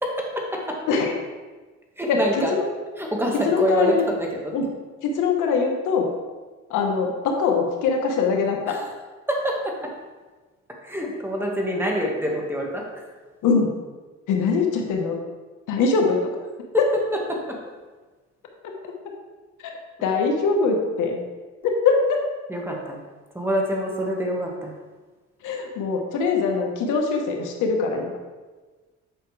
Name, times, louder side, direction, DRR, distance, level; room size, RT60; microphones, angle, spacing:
voice 1, 0.0-0.8 2.0-2.5 3.0-4.5 8.7-8.8 9.3-9.9 10.8-12.8 16.7-16.8 17.3-17.6 22.5-23.0 23.3-24.7, equal, 5° right, -1 dB, 1.6 m, -26 dB
voice 2, 2.1-2.7 3.3-4.1 4.5-4.7 5.0-6.1 6.7-8.8 13.4-13.7 14.3-15.2 15.7-16.3 16.8-16.9 18.6-18.7 19.6-19.7 20.0-21.2 21.6-22.2 25.4-28.1, left 5 dB, 90° left, 2 dB, 1.2 m, -22 dB
8.4 x 5.7 x 3.3 m, 1.3 s
cardioid pair, 90°, 30 cm